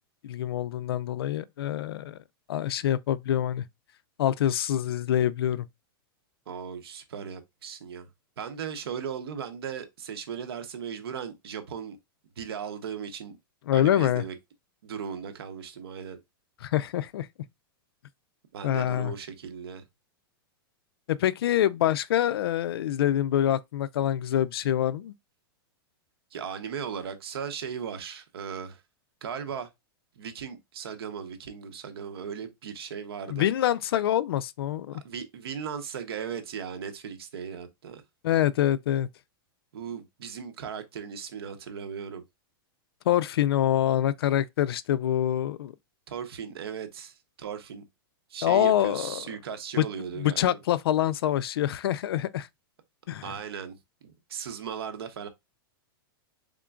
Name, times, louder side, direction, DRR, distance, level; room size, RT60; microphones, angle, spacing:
voice 1, 0.2-2.2 2.5-3.6 4.2-5.7 13.7-14.2 16.6-17.3 18.6-19.1 21.1-25.1 33.3-35.0 38.2-39.1 43.1-45.7 48.4-49.2 49.8-49.9 50.2-52.5 53.1-53.3, left 11 dB, 85° left, 0.4 m, -25 dB
voice 2, 6.5-8.1 8.4-12.0 12.4-13.4 13.7-14.3 14.8-16.2 18.5-19.8 26.3-28.8 29.2-29.7 30.2-33.5 34.9-38.0 39.7-42.2 46.1-47.8 48.3-50.6 53.2-53.8 54.0-55.3, right 7 dB, 85° right, 0.9 m, -37 dB
3.7 x 3.7 x 2.2 m
supercardioid pair, 160°, 12 cm